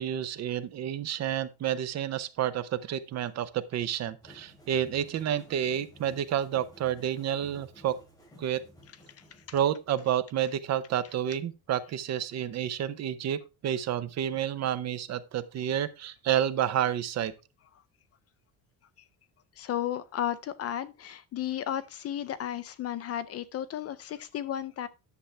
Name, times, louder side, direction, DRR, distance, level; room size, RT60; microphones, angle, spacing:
voice 1, 0.0-8.0 8.4-8.6 9.5-17.3, right 10 dB, 40° right, 0.6 m, -30 dB
sound 1, 4.2-10.0, equal, 10° left, 2.7 m, -55 dB
voice 2, 19.6-24.9, left 11 dB, 40° left, 0.4 m, -34 dB
10.5 x 6.9 x 3.3 m
cardioid pair, 170°, 40 cm